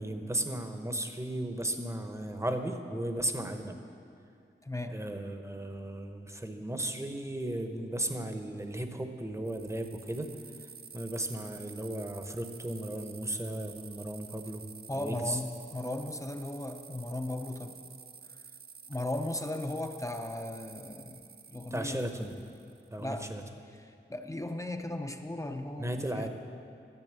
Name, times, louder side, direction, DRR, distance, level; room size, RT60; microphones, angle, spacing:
voice 1, 0.0-3.8 4.9-10.3 10.6-14.6 14.9-15.4 21.7-22.3 22.9-23.4 25.8-26.3, right 1 dB, 15° right, 6 dB, 0.8 m, -35 dB
voice 2, 4.6-5.0 14.9-17.8 18.9-22.1 23.0-23.3 23.8-26.3, left 1 dB, 15° left, 5 dB, 0.6 m, -37 dB
sound 1, 9.5-23.0, right 6 dB, 50° right, 0.4 m, -51 dB
11.0 x 6.7 x 8.1 m, 2.5 s
wide cardioid pair, 75°, 20 cm